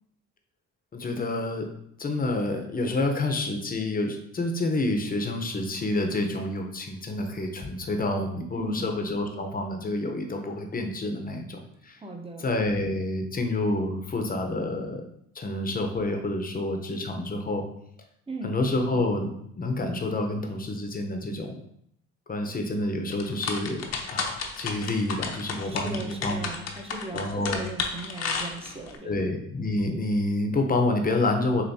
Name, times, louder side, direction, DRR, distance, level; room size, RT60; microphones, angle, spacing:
voice 1, 0.9-1.7 2.0-12.0 12.4-15.1 15.3-17.7 18.4-19.3 19.6-21.6 22.3-26.5 27.1-27.6 29.0-31.6, left 2 dB, 30° left, 4 dB, 0.8 m, -28 dB
voice 2, 8.5-8.9 12.0-12.5 18.3-18.5 25.6-29.2, right 1 dB, 20° right, 2 dB, 0.8 m, -38 dB
sound 1, 23.1-29.0, left 5 dB, 60° left, 0.8 m, -32 dB
6.9 x 2.6 x 2.7 m, 0.72 s
cardioid pair, 90°, 30 cm